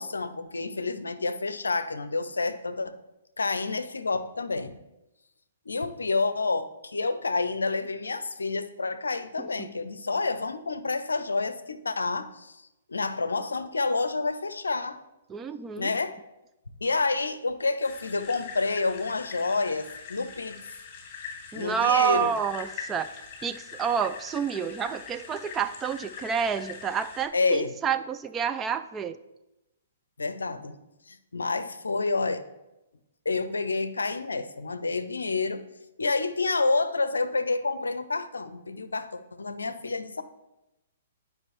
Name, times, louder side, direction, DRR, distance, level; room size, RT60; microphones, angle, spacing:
voice 1, 0.0-2.9 3.4-4.8 5.7-15.0 15.8-16.2 16.8-20.6 21.5-22.3 27.3-27.8 30.2-30.8 31.1-32.5 33.3-35.6 36.0-40.2, left 3 dB, 75° left, 12 dB, 0.6 m, -29 dB
voice 2, 9.4-9.7 15.3-15.9 21.5-23.1 23.4-29.2, right 8 dB, 15° right, 9 dB, 0.3 m, -29 dB
sound 1, 17.8-27.3, left 6 dB, 30° left, 1.7 m, -43 dB
10.5 x 5.1 x 3.1 m, 0.94 s
figure-of-eight pair, 120°, 0 cm